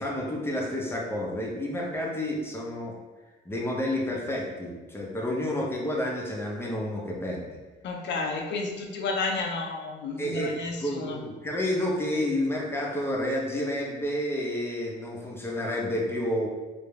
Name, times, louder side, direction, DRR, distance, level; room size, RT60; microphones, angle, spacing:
voice 1, 0.0-2.9 3.5-7.5 10.2-10.5 10.8-16.5, left 1 dB, 10° left, -2 dB, 0.6 m, -30 dB
voice 2, 7.8-11.2, left 3 dB, 65° left, 2 dB, 0.5 m, -31 dB
2.3 x 2.1 x 3.1 m, 1.2 s
cardioid pair, 90°, 20 cm